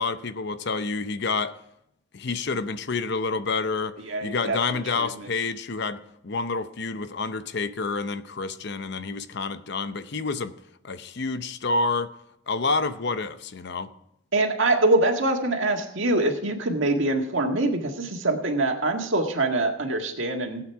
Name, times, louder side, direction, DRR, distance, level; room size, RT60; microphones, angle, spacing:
voice 1, 0.0-1.6 2.1-4.0 4.2-10.5 10.8-12.1 12.5-13.9, left 4 dB, 55° left, 0.7 m, -28 dB
voice 2, 4.1-5.3 14.3-20.6, right 2 dB, 65° right, 1.8 m, -24 dB
16.5 x 8.9 x 4.7 m
head